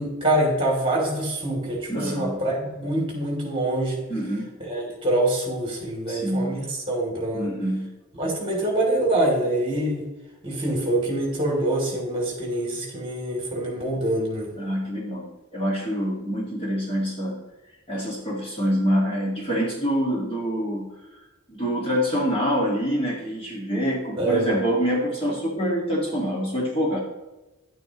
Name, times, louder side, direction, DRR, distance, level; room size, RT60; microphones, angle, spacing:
voice 1, 0.0-4.0 4.6-7.5 8.2-10.0 10.4-14.5 24.2-24.5, right 1 dB, 25° right, -1 dB, 2.8 m, -25 dB
voice 2, 1.9-2.3 4.1-4.5 6.1-6.6 7.3-7.9 14.6-17.4 17.9-20.9 21.5-27.0, equal, 25° left, -3 dB, 1.9 m, -26 dB
11.0 x 9.1 x 3.0 m, 1.1 s
head